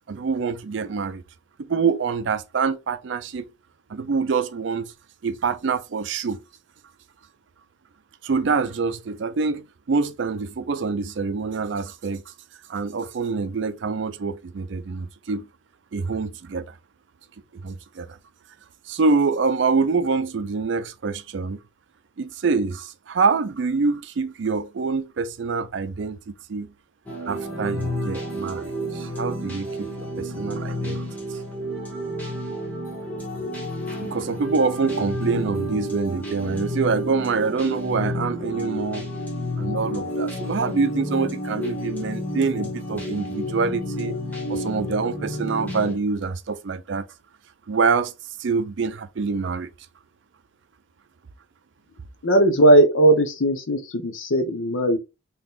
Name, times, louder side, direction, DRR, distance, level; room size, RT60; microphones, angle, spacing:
voice 1, 0.1-1.2 1.6-3.5 3.9-4.9 5.2-6.4 8.2-12.2 12.7-15.5 15.9-16.8 17.5-18.2 18.9-21.6 22.2-26.7 27.3-31.0 34.0-39.1 39.6-44.2 44.5-47.1 47.7-48.1 48.4-49.7, right 4 dB, 70° right, 0.4 m, -25 dB
sound 1, 27.1-45.9, equal, 10° left, 1.0 m, -30 dB
voice 2, 52.2-55.0, right 1 dB, 85° left, 0.8 m, -18 dB
3.7 x 2.9 x 2.4 m
head